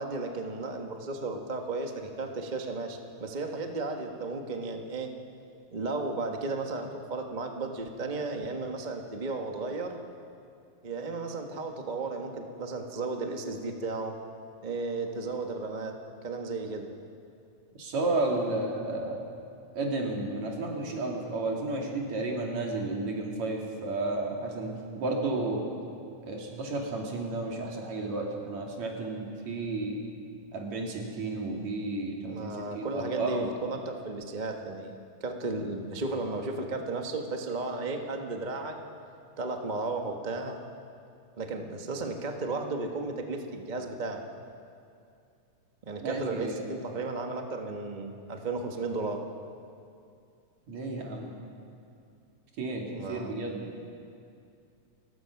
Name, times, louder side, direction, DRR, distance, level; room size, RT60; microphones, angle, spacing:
voice 1, 0.0-5.1 5.7-10.0 10.8-14.2 14.6-15.9 16.2-16.9 32.2-34.9 35.2-38.8 39.4-40.6 41.4-44.2 45.8-49.2 52.9-53.3, right 3 dB, 30° right, 3 dB, 0.7 m, -34 dB
voice 2, 17.8-19.3 19.7-25.6 26.3-30.0 30.5-33.6 46.0-46.8 50.7-51.3 52.6-53.7, right 2 dB, 70° right, -1 dB, 3.8 m, -32 dB
30.0 x 15.0 x 6.0 m, 2.5 s
omnidirectional pair, 3.3 m